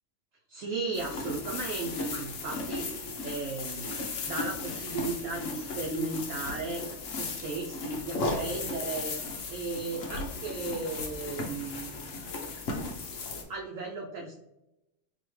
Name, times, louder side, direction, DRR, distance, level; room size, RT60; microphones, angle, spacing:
voice 1, 0.5-6.8 7.1-9.2 9.5-11.9 12.6-12.8 13.5-14.3, right 3 dB, 65° right, 0 dB, 0.9 m, -35 dB
sound 1, 0.9-13.4, left 3 dB, 60° left, 1.0 m, -36 dB
4.8 x 2.8 x 3.0 m, 0.92 s
omnidirectional pair, 1.7 m